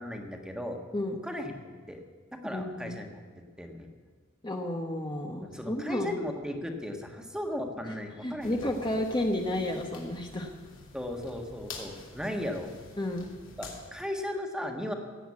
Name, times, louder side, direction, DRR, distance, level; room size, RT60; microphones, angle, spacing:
voice 1, 0.0-0.8 1.2-2.0 2.3-3.2 3.6-3.9 5.4-8.9 10.9-12.7 13.6-14.9, left 1 dB, 5° right, 4 dB, 1.4 m, -36 dB
voice 2, 2.4-3.0 4.4-6.2 8.2-10.5 13.0-13.3, left 1 dB, 20° left, 2 dB, 1.1 m, -31 dB
sound 1, 8.4-13.9, left 3 dB, 70° left, 3.0 m, -48 dB
17.0 x 7.9 x 8.5 m, 1.5 s
head